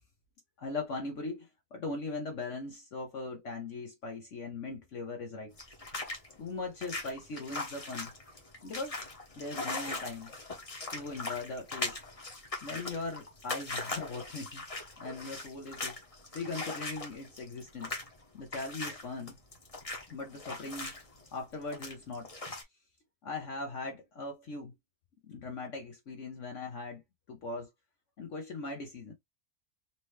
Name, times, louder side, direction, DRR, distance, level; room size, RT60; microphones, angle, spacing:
voice 1, 0.6-5.5 6.4-8.1 8.6-9.0 9.4-10.3 10.9-12.0 12.6-14.6 15.0-15.9 16.3-17.9 18.3-19.3 20.1-20.9 21.3-22.3 23.2-24.7 25.3-27.0 27.3-27.7 28.2-29.1, left 3 dB, 55° left, 1.2 m, -39 dB
sound 1, 5.5-22.6, left 2 dB, 25° left, 1.1 m, -40 dB
4.2 x 2.9 x 3.2 m
omnidirectional pair, 1.6 m